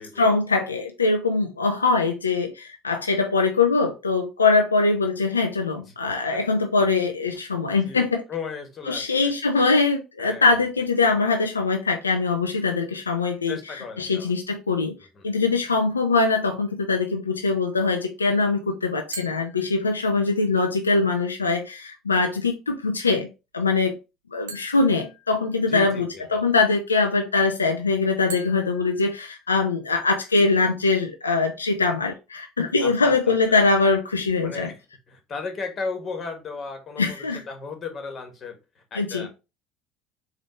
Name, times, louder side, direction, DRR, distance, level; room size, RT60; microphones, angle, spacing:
voice 1, 0.2-8.2 8.9-13.6 14.0-15.0 15.2-23.3 23.5-24.0 24.3-34.7 37.0-37.4 38.9-39.3, left 3 dB, 90° left, 0.4 m, -22 dB
voice 2, 6.3-6.6 7.8-9.3 10.2-10.6 13.5-14.3 14.7-14.8 15.1-15.3 25.6-26.4 32.8-33.6 34.4-34.8 35.1-39.3, left 4 dB, 40° left, 1.4 m, -36 dB
sound 1, 19.1-20.4 24.5-26.0 28.3-30.0, right 4 dB, 80° right, 0.7 m, -43 dB
4.3 x 2.4 x 4.3 m
figure-of-eight pair, 65°, 0 cm